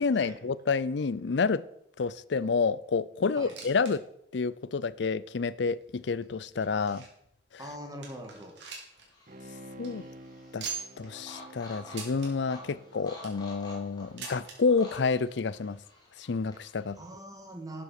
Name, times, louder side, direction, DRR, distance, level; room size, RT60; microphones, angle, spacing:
voice 1, 0.0-1.6 2.0-4.0 4.3-7.0 9.8-10.1 10.5-10.7 11.0-15.8 16.2-17.0, left 4 dB, 70° left, 0.5 m, -29 dB
sound 1, 3.3-3.9 4.2-4.3 5.0-5.1 5.8-7.3 7.7-7.8 8.0-9.1 9.4-9.5 9.7-9.9 10.6-11.1 11.9-12.3 12.9-13.4 14.2-14.6 15.5-15.6 15.8-15.9 16.7-16.8, right 6 dB, 75° right, 3.3 m, -41 dB
voice 2, 7.6-8.6 17.0-17.8, right 1 dB, 20° right, 2.1 m, -42 dB
sound 2, 8.9-17.0, left 2 dB, 20° left, 3.5 m, -50 dB
Bowed string instrument, 9.3-13.9 14.3-14.4, right 1 dB, 45° right, 0.7 m, -50 dB
12.0 x 7.7 x 6.5 m
head